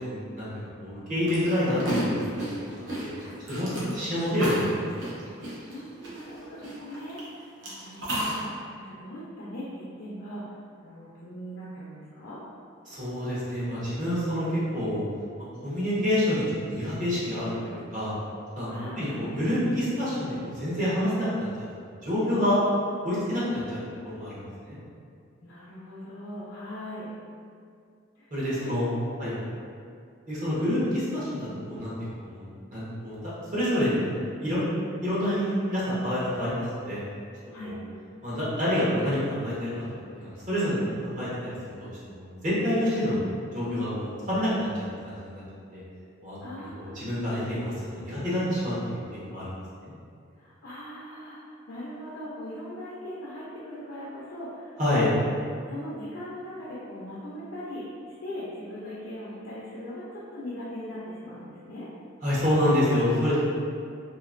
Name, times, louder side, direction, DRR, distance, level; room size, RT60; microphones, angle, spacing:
voice 1, 0.0-2.3 2.6-2.9 3.5-5.2 12.9-14.5 14.7-15.0 15.6-18.1 18.5-21.7 22.0-22.6 23.0-23.8 24.0-24.8 28.3-28.9 29.2-29.3 30.3-31.9 32.2-34.6 35.0-37.0 37.6-37.8 38.2-39.7 40.1-40.8 41.0-41.5 41.8-43.2 43.5-45.4 45.7-45.8 46.2-49.5 49.8-49.9 54.8-55.1 62.2-63.4, left 1 dB, 40° right, -10 dB, 1.0 m, -28 dB
sound 1, 1.3-7.2 7.6-8.4, right 1 dB, 65° right, 0.8 m, -33 dB
voice 2, 5.7-12.4 18.7-19.2 23.5-23.6 25.4-27.1 28.2-28.3 28.6-28.8 29.2-29.4 37.5-37.7 43.7-43.9 46.4-47.1 50.4-55.1 55.7-57.8 58.2-61.9, left 1 dB, 65° left, -8 dB, 0.5 m, -40 dB
2.9 x 2.5 x 2.5 m, 2.3 s
head